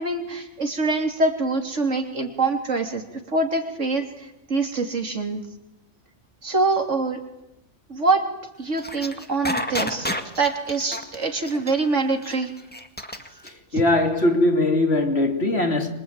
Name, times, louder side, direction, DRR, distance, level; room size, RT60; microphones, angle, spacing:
voice 1, 0.0-3.0 3.3-5.4 6.4-7.2 7.9-8.2 8.6-12.5, right 3 dB, 80° right, 3.6 m, -24 dB
sound 1, 8.8-13.5, left 1 dB, 10° left, 1.9 m, -30 dB
voice 2, 13.4-15.9, left 2 dB, 60° left, 3.4 m, -21 dB
25.0 x 24.0 x 9.1 m
omnidirectional pair, 1.2 m